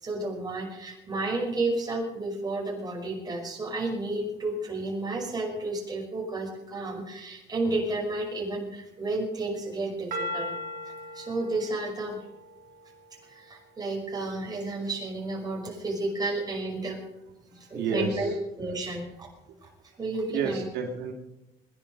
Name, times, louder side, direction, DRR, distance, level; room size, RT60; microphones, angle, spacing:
voice 1, 0.0-10.5 11.1-12.2 13.2-17.0 17.5-18.3 18.6-19.3 19.6-19.7 20.0-20.6, right 2 dB, 25° right, 0 dB, 5.8 m, -32 dB
sound 1, 10.1-13.3, left 1 dB, 60° right, 4.7 m, -38 dB
voice 2, 17.5-18.3 20.3-21.1, right 5 dB, 85° right, 0 dB, 2.8 m, -31 dB
21.5 x 11.0 x 5.3 m, 0.97 s
cardioid pair, 110°, 17 cm